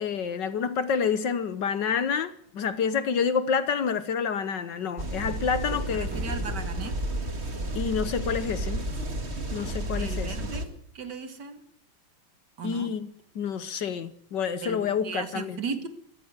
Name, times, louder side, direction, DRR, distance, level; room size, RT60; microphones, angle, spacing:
voice 1, 0.0-6.1 7.7-8.8 9.5-10.3 12.6-13.1 13.3-15.6, left 6 dB, 60° left, 1.5 m, -28 dB
sound 1, 5.0-10.7, right 1 dB, 30° right, 2.4 m, -32 dB
sound 2, 5.9-6.7 7.1-7.2, right 1 dB, 5° right, 6.8 m, -38 dB
voice 2, 5.9-7.0 10.0-10.7 10.9-11.6 12.6-12.9 14.6-15.9, right 5 dB, 50° right, 2.7 m, -36 dB
23.5 x 15.0 x 8.1 m
omnidirectional pair, 2.4 m